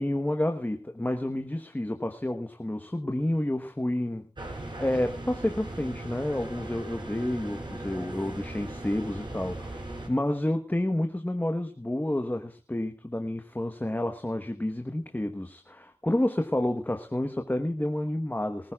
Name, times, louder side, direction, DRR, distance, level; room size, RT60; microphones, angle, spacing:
voice 1, 0.0-18.7, left 1 dB, 15° left, 5 dB, 1.2 m, -30 dB
sound 1, 4.4-10.1, right 1 dB, 45° right, 5.5 m, -38 dB
24.0 x 14.5 x 2.4 m, 0.35 s
wide cardioid pair, 50°, 11 cm